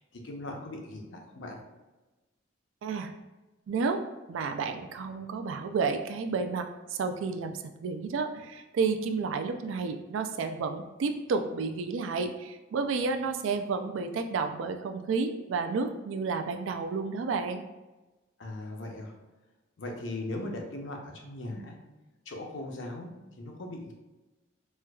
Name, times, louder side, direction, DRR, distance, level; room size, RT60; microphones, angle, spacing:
voice 1, 0.0-1.6 18.4-19.1 19.8-21.8 22.3-23.1 23.4-23.9, left 1 dB, 70° left, 1 dB, 0.6 m, -39 dB
voice 2, 2.8-3.1 3.7-4.0 4.3-17.6, right 4 dB, 80° right, 7 dB, 0.3 m, -31 dB
4.3 x 2.3 x 2.3 m, 1.1 s
head